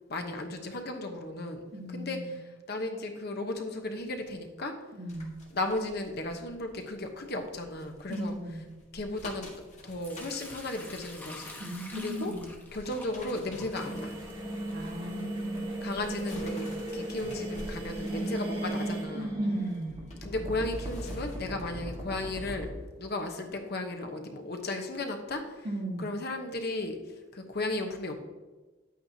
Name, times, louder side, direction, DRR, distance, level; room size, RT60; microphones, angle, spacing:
voice 1, 0.1-1.6 1.9-4.7 5.5-8.4 8.9-11.6 11.9-12.3 12.7-14.2 15.8-16.7 16.9-19.3 20.2-22.7 23.0-25.7 26.0-27.0 27.3-28.1, left 2 dB, 55° left, 4 dB, 1.0 m, -35 dB
voice 2, 1.7-2.4 4.9-5.3 8.1-8.6 11.6-12.5 14.7-15.7 19.1-19.9 25.6-26.0, right 1 dB, 50° right, -1 dB, 2.0 m, -37 dB
sound 1, 5.1-22.0 22.4-22.6, left 1 dB, 35° left, 1.7 m, -50 dB
Sink (filling or washing) / Liquid, 10.0-16.9, left 2 dB, 10° left, 1.0 m, -49 dB
sound 2, 13.7-22.7, right 1 dB, 25° right, 1.7 m, -36 dB
10.0 x 8.6 x 2.8 m, 1.2 s
head